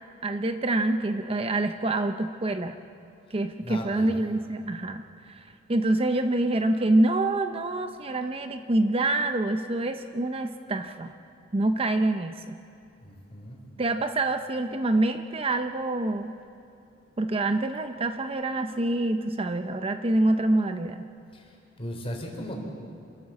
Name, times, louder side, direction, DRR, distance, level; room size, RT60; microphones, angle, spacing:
voice 1, 0.2-2.8 3.3-11.1 11.5-12.6 13.8-16.3 17.2-21.1, right 2 dB, 30° right, 8 dB, 0.6 m, -26 dB
voice 2, 3.3-4.1 13.0-13.6 21.3-22.6, equal, 30° left, 0 dB, 4.0 m, -38 dB
27.5 x 14.0 x 7.3 m, 2.6 s
head